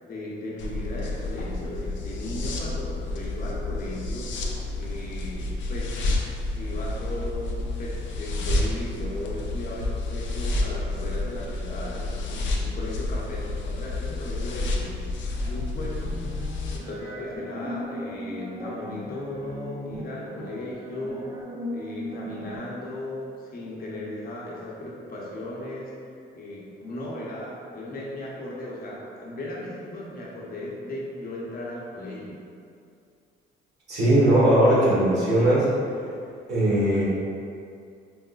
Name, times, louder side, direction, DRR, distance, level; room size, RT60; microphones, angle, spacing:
voice 1, 0.0-4.3 4.7-6.1 6.5-15.0 15.5-16.1 16.4-21.3 21.7-25.9 26.3-32.4, left 1 dB, 45° left, -5 dB, 0.8 m, -36 dB
sound 1, 0.6-16.8, left 2 dB, 70° left, 0.5 m, -30 dB
sound 2, 15.4-22.6, equal, 20° right, 0.4 m, -37 dB
voice 2, 33.9-35.7 36.5-37.0, right 1 dB, 60° right, -8 dB, 1.4 m, -19 dB
4.7 x 2.1 x 2.3 m, 2.4 s
cardioid pair, 90°, 20 cm